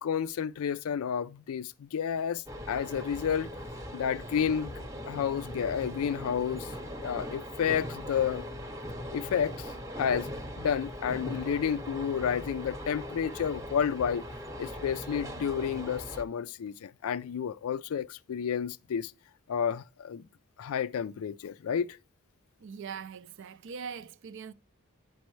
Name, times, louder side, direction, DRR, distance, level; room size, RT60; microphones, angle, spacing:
voice 1, 0.0-3.5 3.9-6.7 7.0-8.5 9.1-10.3 10.6-14.3 14.6-19.1 19.5-20.2 20.6-22.0, left 7 dB, 75° left, 0.4 m, -31 dB
sound 1, 2.5-16.2, equal, 15° right, 0.8 m, -40 dB
voice 2, 22.6-24.5, right 6 dB, 55° right, 0.4 m, -41 dB
10.5 x 5.3 x 3.1 m
head